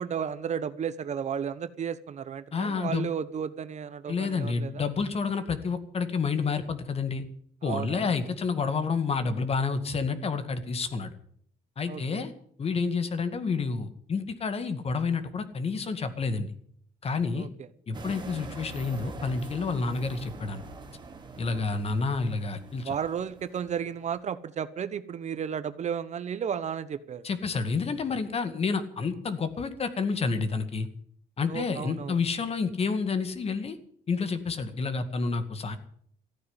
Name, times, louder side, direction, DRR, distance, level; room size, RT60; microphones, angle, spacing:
voice 1, 0.0-4.9 7.6-8.1 11.9-12.3 17.3-17.5 21.5-21.6 22.8-27.2 31.5-32.2, right 8 dB, 45° right, 13 dB, 1.0 m, -33 dB
voice 2, 2.5-3.1 4.1-7.2 7.6-11.1 11.8-12.3 12.6-16.5 17.0-17.5 17.9-20.6 21.4-22.9 27.2-30.9 31.4-33.8 34.1-35.8, left 4 dB, 35° left, 11 dB, 2.0 m, -29 dB
sound 1, 17.9-24.2, right 4 dB, 25° right, 2.6 m, -44 dB
14.5 x 9.5 x 9.7 m, 0.64 s
cardioid pair, 110°, 17 cm